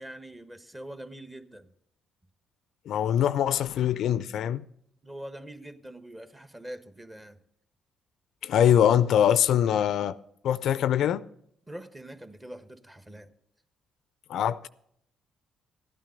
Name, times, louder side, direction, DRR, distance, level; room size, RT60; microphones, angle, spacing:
voice 1, 0.0-1.7 5.0-7.4 11.7-13.3, right 1 dB, 20° right, 1.2 m, -43 dB
voice 2, 2.9-4.6 8.4-10.2 10.4-11.2 14.3-14.7, left 10 dB, 70° left, 0.4 m, -23 dB
13.5 x 9.1 x 5.2 m
supercardioid pair, 55°, 0 cm